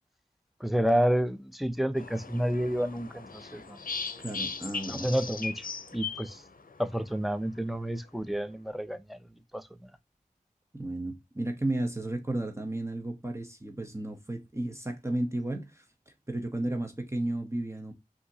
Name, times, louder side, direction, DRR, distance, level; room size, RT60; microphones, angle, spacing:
voice 1, 0.6-3.8 4.9-6.4 6.8-9.2 9.5-9.7, equal, ahead, 0.5 m, -29 dB
sound 1, 2.0-7.0, left 5 dB, 70° left, 0.6 m, -38 dB
voice 2, 4.2-5.1 10.7-17.9, right 1 dB, 20° right, 0.9 m, -33 dB
5.5 x 2.9 x 2.8 m
wide cardioid pair, 45°, 15 cm